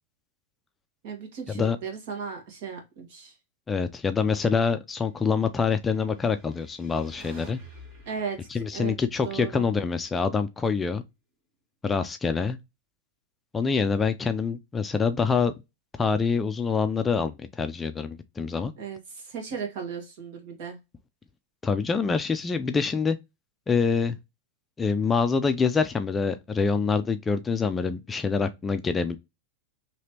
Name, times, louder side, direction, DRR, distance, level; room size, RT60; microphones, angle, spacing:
voice 1, 1.0-3.3 8.0-8.9 9.2-9.7 18.8-20.8, right 6 dB, 60° right, 1.5 m, -36 dB
voice 2, 3.7-7.6 8.5-11.0 11.8-12.6 13.5-15.5 16.0-18.7 21.6-23.2 23.7-24.2 24.8-29.2, left 5 dB, 15° left, 0.3 m, -25 dB
sound 1, 6.1-10.4, right 1 dB, 35° right, 1.3 m, -50 dB
3.1 x 2.9 x 2.9 m
supercardioid pair, 135°, 0 cm